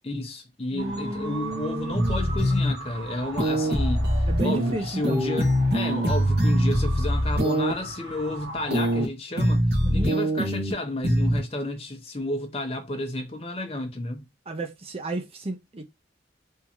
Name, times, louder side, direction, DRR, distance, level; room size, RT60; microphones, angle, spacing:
voice 1, 0.0-4.1 4.4-14.2, left 1 dB, 30° left, 0.8 m, -31 dB
voice 2, 0.7-2.3 4.3-5.2 9.8-10.2 14.5-15.8, right 2 dB, 30° right, 0.6 m, -32 dB
sound 1, 0.8-9.0, right 2 dB, 90° right, 1.4 m, -39 dB
sound 2, 1.9-2.7 3.4-4.7 5.0-7.7 8.7-9.1 9.4-10.7 11.0-11.4, equal, 55° right, 1.3 m, -23 dB
3.7 x 2.8 x 2.9 m
head